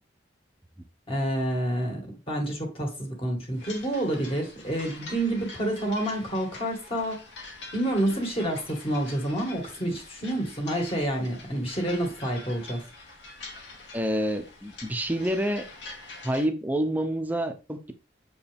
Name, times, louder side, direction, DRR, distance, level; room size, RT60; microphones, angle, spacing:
voice 1, 1.1-2.0 2.3-7.2 7.7-12.8, right 1 dB, 30° left, 2.3 m, -28 dB
sound 1, 3.5-16.5, left 3 dB, 75° left, 2.4 m, -45 dB
voice 2, 13.9-15.7 16.2-17.9, right 1 dB, 10° right, 0.8 m, -28 dB
7.5 x 4.8 x 3.6 m
head